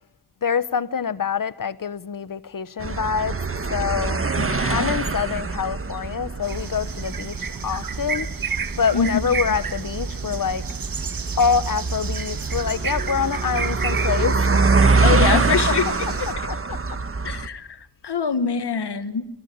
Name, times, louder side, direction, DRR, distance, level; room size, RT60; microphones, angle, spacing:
voice 1, 0.4-3.4 3.7-4.2 4.7-8.3 8.8-10.7 11.4-14.8 15.3-15.4 15.7-15.8 16.3-17.0, left 6 dB, 55° left, 0.9 m, -25 dB
Rondweg Houten, 2.8-17.5, right 3 dB, 35° right, 1.5 m, -24 dB
voice 2, 4.4-4.9 8.9-9.2 15.0-16.3 17.2-19.3, left 6 dB, 85° left, 1.8 m, -25 dB
sound 1, 6.4-16.3, right 6 dB, 60° right, 1.3 m, -33 dB
25.5 x 25.0 x 8.7 m
wide cardioid pair, 120°, 39 cm